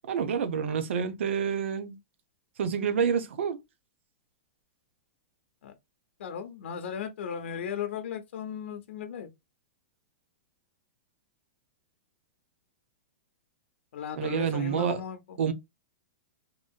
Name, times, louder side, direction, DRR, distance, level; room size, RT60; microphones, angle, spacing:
voice 1, 0.1-2.0 2.6-3.6 14.2-15.0 15.4-15.5, right 7 dB, 75° right, 0.6 m, -28 dB
voice 2, 6.2-9.3 13.9-15.4, left 7 dB, 70° left, 0.6 m, -36 dB
2.9 x 2.7 x 2.2 m
supercardioid pair, 160°, 7 cm